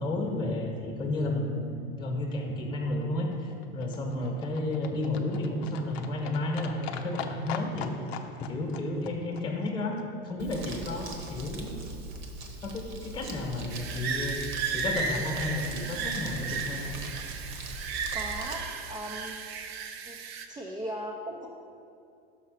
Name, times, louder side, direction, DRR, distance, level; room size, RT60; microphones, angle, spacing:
voice 1, 0.0-1.7 2.0-7.9 8.4-11.8 12.6-14.4 14.7-17.0, left 2 dB, 15° left, 0 dB, 1.1 m, -32 dB
Livestock farm animals working animals, 2.7-10.9 11.2-11.3 11.5-11.6 11.8-11.9 12.1-12.2 12.4-12.5 12.7-12.8 13.1-13.2 13.4-13.5, left 7 dB, 80° left, 0.6 m, -42 dB
voice 2, 4.1-4.4 18.1-19.6 20.1-20.2 20.5-21.5, right 1 dB, 15° right, -1 dB, 0.5 m, -38 dB
Crumpling crinkling, 10.4-18.6, right 1 dB, 40° right, 1.1 m, -41 dB
sound 1, 13.7-20.5, right 5 dB, 70° right, 0.7 m, -34 dB
5.8 x 5.4 x 4.9 m, 2.6 s
supercardioid pair, 110°, 31 cm